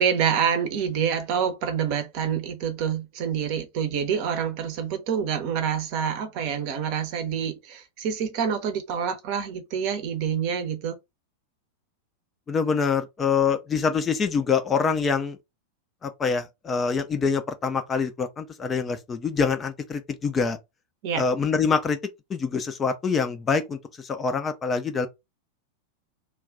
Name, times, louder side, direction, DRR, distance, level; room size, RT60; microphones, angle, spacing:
voice 1, 0.0-11.0 21.0-21.2, right 7 dB, 45° right, 0.7 m, -27 dB
voice 2, 12.5-15.4 16.0-20.6 21.2-22.0 22.3-25.1, left 5 dB, 20° left, 0.4 m, -25 dB
2.3 x 2.1 x 3.7 m
figure-of-eight pair, 90°, 0 cm